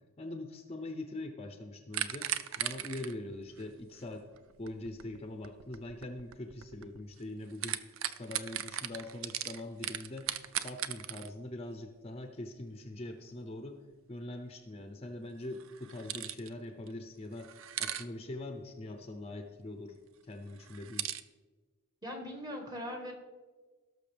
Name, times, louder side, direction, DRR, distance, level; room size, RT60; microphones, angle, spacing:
voice 1, 0.2-4.3 4.6-10.3 10.6-13.8 14.1-17.5 17.8-20.0 20.2-21.1, left 1 dB, 30° left, 5 dB, 0.6 m, -43 dB
sound 1, 1.9-7.2 7.5-11.3 15.5-16.5 16.9-17.0 17.4-18.0 20.6-21.2, right 11 dB, 65° right, 0.5 m, -38 dB
voice 2, 22.0-23.1, equal, 20° right, 3 dB, 1.4 m, -40 dB
17.5 x 6.4 x 3.4 m, 1.3 s
head